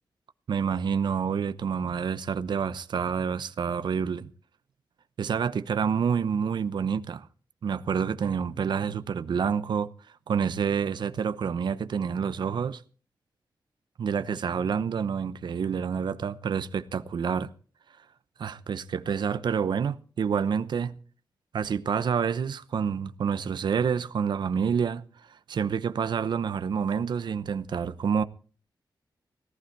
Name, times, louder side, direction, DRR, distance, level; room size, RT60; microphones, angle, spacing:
voice 1, 0.5-4.3 5.2-7.3 7.6-9.9 10.3-12.8 14.0-17.5 18.4-21.0 21.5-25.0 25.5-28.2, right 6 dB, 70° right, 0.9 m, -28 dB
18.0 x 14.5 x 4.6 m
wide cardioid pair, 155°, 8 cm